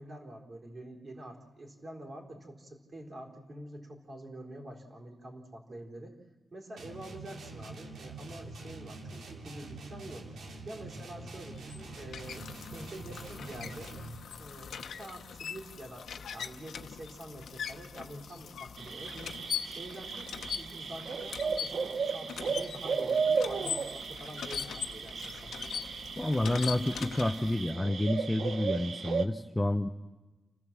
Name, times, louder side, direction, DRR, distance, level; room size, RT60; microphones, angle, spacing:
voice 1, 0.0-6.2 6.5-10.3 10.6-14.0 14.4-25.5, right 1 dB, 40° right, 1 dB, 4.0 m, -46 dB
sound 1, 6.8-14.3, right 2 dB, 90° right, 2.9 m, -45 dB
sound 2, 11.4-27.7, left 7 dB, 90° left, 0.9 m, -41 dB
sound 3, 18.8-29.2, right 5 dB, 65° right, 1.0 m, -35 dB
voice 2, 26.2-29.9, left 1 dB, 10° left, 7 dB, 0.7 m, -29 dB
30.0 x 14.5 x 7.5 m, 1.2 s
wide cardioid pair, 125°, 0 cm